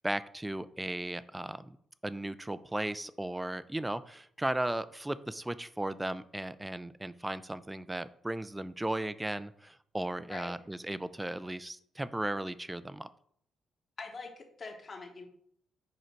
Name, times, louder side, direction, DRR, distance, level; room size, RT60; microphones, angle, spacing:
voice 1, 0.0-1.8 2.0-13.1, right 1 dB, 10° right, 15 dB, 0.4 m, -36 dB
voice 2, 14.0-15.3, left 4 dB, 40° left, 3 dB, 1.4 m, -43 dB
6.6 x 5.1 x 4.5 m, 0.66 s
cardioid pair, 110°, 0 cm